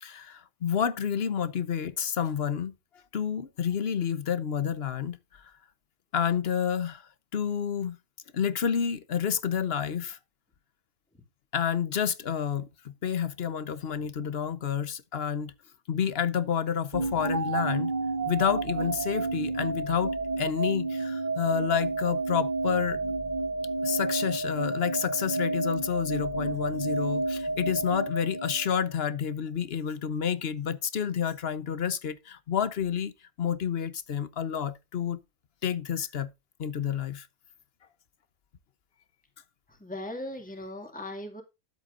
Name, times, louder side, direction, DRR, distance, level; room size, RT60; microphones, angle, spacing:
voice 1, 0.0-2.7 3.1-5.4 6.1-7.0 7.3-8.0 8.3-10.2 11.5-15.5 15.9-17.9 18.3-23.0 23.8-33.1 33.4-35.2 35.6-36.3 36.6-37.3, left 8 dB, 50° left, 1.1 m, -29 dB
sound 1, 16.9-29.0, right 3 dB, 35° right, 1.2 m, -30 dB
voice 2, 39.7-41.4, left 1 dB, 5° left, 2.2 m, -38 dB
12.0 x 8.0 x 2.5 m
omnidirectional pair, 1.4 m